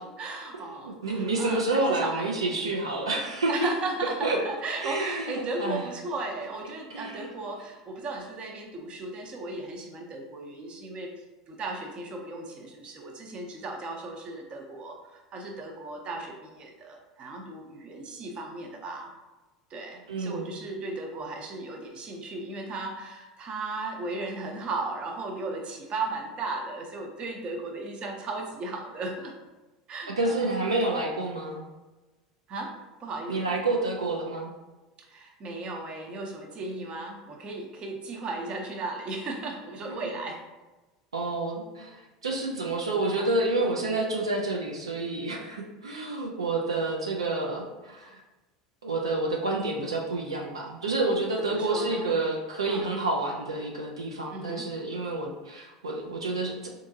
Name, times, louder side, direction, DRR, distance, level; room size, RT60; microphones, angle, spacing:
voice 1, 0.0-2.4 3.5-11.1 11.5-19.1 19.7-29.3 29.9-30.5 32.5-32.7 33.0-33.5 35.0-40.4 43.1-43.3 51.4-52.2 52.7-52.9 54.3-54.6, right 2 dB, 40° right, 2 dB, 0.6 m, -36 dB
voice 2, 0.5-3.5 4.2-4.4 4.8-5.8 6.9-7.3 20.1-20.5 30.2-31.6 33.3-34.5 39.9-40.1 41.1-48.2 48.8-56.7, right 2 dB, 90° right, -1 dB, 0.4 m, -29 dB
3.6 x 2.6 x 2.6 m, 1.1 s
hypercardioid pair, 80°, 3 cm